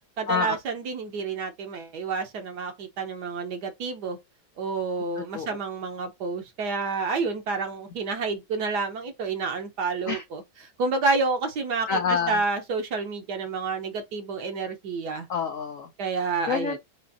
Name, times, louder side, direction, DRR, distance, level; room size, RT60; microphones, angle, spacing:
voice 1, 0.2-4.2 4.6-10.4 10.8-15.3 16.0-16.8, right 4 dB, 65° right, 1.3 m, -29 dB
voice 2, 11.9-12.4 15.3-15.9 16.5-16.8, left 6 dB, 70° left, 0.7 m, -27 dB
5.1 x 2.9 x 2.7 m
omnidirectional pair, 2.1 m